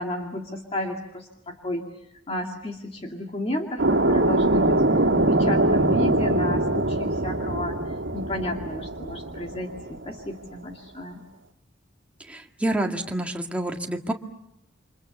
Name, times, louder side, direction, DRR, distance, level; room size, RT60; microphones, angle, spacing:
voice 1, 0.0-1.8 2.3-4.8 5.3-7.8 8.1-11.2, left 1 dB, 30° left, 2 dB, 2.4 m, -32 dB
sound 1, 3.8-10.1, right 2 dB, 85° right, 2.2 m, -23 dB
voice 2, 12.3-14.1, right 1 dB, 5° right, 2 dB, 1.9 m, -28 dB
29.5 x 26.0 x 7.1 m, 0.81 s
head